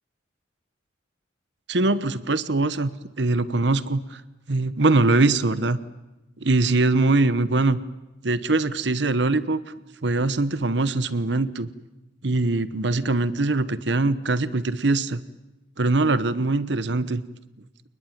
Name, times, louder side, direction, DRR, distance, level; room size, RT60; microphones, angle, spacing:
voice 1, 1.7-2.9 3.2-4.2 4.5-5.8 6.4-7.8 8.2-9.6 10.0-11.7 12.2-15.2 15.8-17.2, right 2 dB, 65° right, 16 dB, 1.1 m, -22 dB
28.0 x 20.5 x 9.4 m, 1.0 s
head